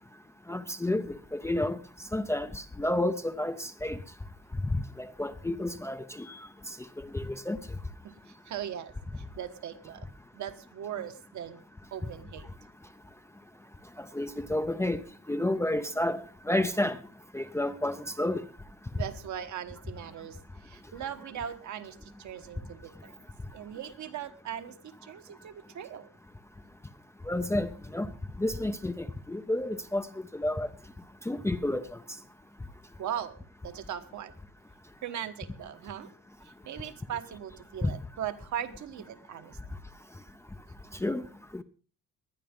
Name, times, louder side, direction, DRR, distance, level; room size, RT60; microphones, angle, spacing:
voice 1, 0.5-1.8 2.1-4.0 4.6-7.6 14.0-15.0 15.3-17.0 17.3-18.4 27.3-28.1 28.4-30.1 30.3-30.7 31.3-32.0 37.8-37.9 41.0-41.2 41.5-41.6, left 1 dB, 10° left, 0.6 m, -30 dB
voice 2, 8.0-11.6 11.9-12.5 18.9-23.2 23.5-26.1 33.0-34.3 35.0-36.1 36.4-39.6, right 9 dB, 60° right, 1.4 m, -39 dB
19.5 x 11.5 x 3.7 m
cardioid pair, 140°, 33 cm